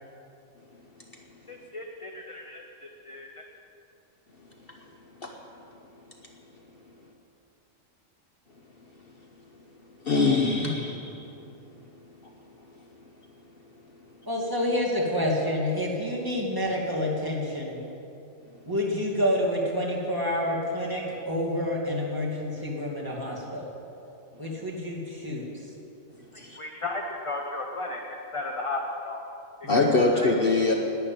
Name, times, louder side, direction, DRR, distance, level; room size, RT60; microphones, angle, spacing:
voice 1, 1.5-3.5 26.3-29.2 29.6-29.8 30.1-30.3, left 2 dB, 30° left, 2 dB, 0.8 m, -35 dB
voice 2, 10.0-11.2 26.4-26.6 29.7-30.7, left 3 dB, 50° left, 2 dB, 1.1 m, -23 dB
voice 3, 14.3-17.8 18.7-23.6 24.4-25.4 29.6-30.0, left 1 dB, 15° right, -4 dB, 2.4 m, -28 dB
11.5 x 9.8 x 8.9 m, 2.9 s
omnidirectional pair, 1.3 m